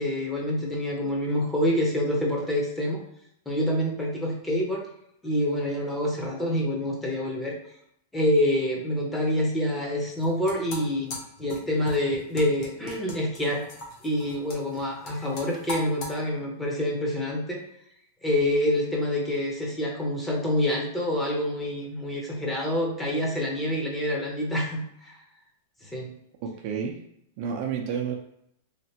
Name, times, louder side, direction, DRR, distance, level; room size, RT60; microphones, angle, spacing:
voice 1, 0.0-3.0 3.5-4.8 5.2-7.6 8.1-13.6 14.0-17.6 18.2-25.2 25.8-26.1, left 1 dB, 10° left, -1 dB, 0.8 m, -27 dB
sound 1, 10.1-16.1, left 1 dB, 45° left, 1.0 m, -40 dB
voice 2, 26.4-27.0 27.4-28.1, right 7 dB, 50° right, 2 dB, 0.5 m, -30 dB
3.2 x 2.4 x 2.8 m, 0.75 s
hypercardioid pair, 135°, 0 cm